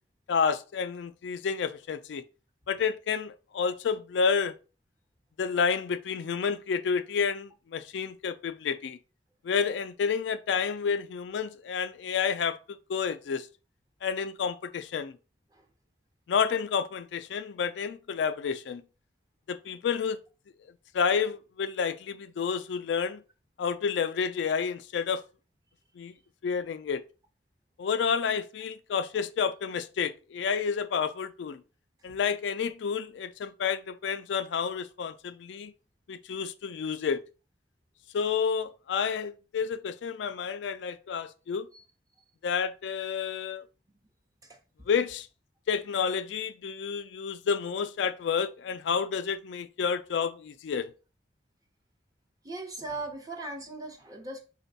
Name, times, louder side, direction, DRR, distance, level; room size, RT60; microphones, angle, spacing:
voice 1, 0.3-2.2 2.7-4.6 5.4-9.0 9.4-13.5 14.0-15.1 16.3-18.8 19.5-20.2 20.9-23.2 23.6-25.2 26.0-26.1 26.4-27.0 27.8-31.6 32.0-35.7 36.1-37.2 38.1-41.7 42.4-43.7 44.9-45.3 45.7-50.9, left 6 dB, 70° left, 0.3 m, -30 dB
voice 2, 52.4-54.4, right 2 dB, 20° right, 0.8 m, -39 dB
4.2 x 2.2 x 4.0 m
head